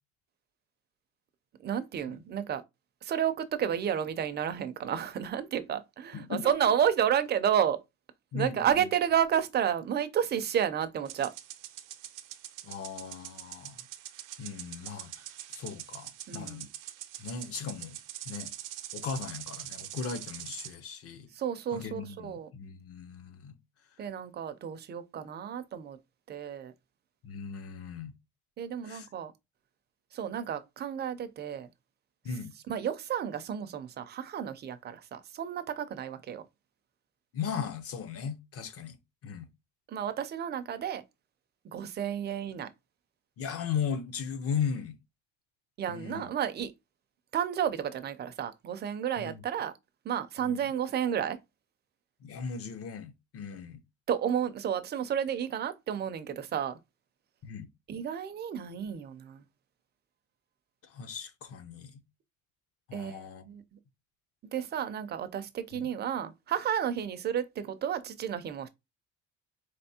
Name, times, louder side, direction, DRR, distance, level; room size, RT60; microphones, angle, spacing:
voice 1, 1.6-2.6 3.0-7.8 8.3-11.3 16.3-16.7 21.3-22.5 24.0-26.0 26.3-26.7 28.6-29.3 30.1-31.7 32.7-36.5 39.9-41.0 41.6-42.7 45.8-46.7 47.3-49.7 50.0-51.4 54.1-56.8 57.9-59.4 62.9-63.6 64.5-68.7, right 9 dB, 35° right, 0.4 m, -31 dB
voice 2, 6.1-6.6 8.3-8.8 12.6-13.8 14.4-15.2 15.5-16.7 17.2-18.0 18.3-18.5 18.9-21.3 21.7-23.6 27.2-28.2 28.8-29.1 32.2-32.5 37.3-39.5 43.4-45.0 45.9-46.3 49.2-49.4 50.4-50.6 52.2-53.8 57.4-57.7 60.8-62.0 62.9-63.4 65.7-65.8, left 6 dB, 50° left, 0.7 m, -37 dB
sound 1, 11.0-20.7, right 13 dB, 80° right, 0.6 m, -44 dB
4.0 x 3.4 x 2.7 m
cardioid pair, 150°, 31 cm